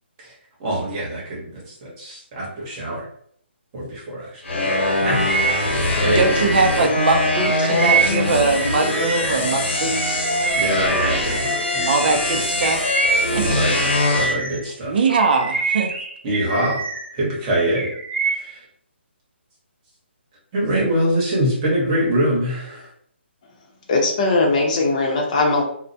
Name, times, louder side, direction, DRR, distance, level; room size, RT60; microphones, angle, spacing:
voice 1, 0.6-3.1 3.7-4.4 4.8-5.2 6.0-6.3 10.6-12.4 13.4-13.7 14.1-15.0 16.2-16.8 17.1-17.9 18.4-18.6 20.5-22.9, right 1 dB, 25° right, -5 dB, 0.9 m, -24 dB
sound 1, 4.4-14.3, left 2 dB, 80° left, 1.0 m, -22 dB
Bird vocalization bird call bird song, 5.0-9.5 9.9-14.7 15.1-17.2 17.5-18.6, right 4 dB, 85° right, 0.8 m, -26 dB
voice 2, 6.0-10.3 11.9-12.8 13.3-13.6 14.9-15.9, right 4 dB, 50° right, 4 dB, 0.5 m, -21 dB
voice 3, 23.9-25.6, left 3 dB, 35° left, 0 dB, 0.7 m, -19 dB
2.3 x 2.1 x 2.7 m, 0.64 s
hypercardioid pair, 160°, 6 cm